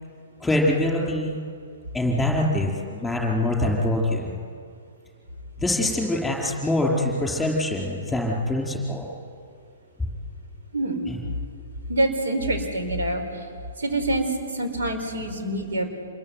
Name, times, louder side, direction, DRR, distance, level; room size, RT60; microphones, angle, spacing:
voice 1, 0.4-1.4 1.9-4.4 5.6-9.1 10.0-10.1 11.1-11.2, left 1 dB, 5° left, -1 dB, 5.0 m, -24 dB
voice 2, 10.7-11.1 11.9-13.4 13.8-15.9, right 1 dB, 65° right, 5 dB, 5.0 m, -26 dB
27.5 x 21.5 x 9.5 m, 2.3 s
figure-of-eight pair, 120°, 0 cm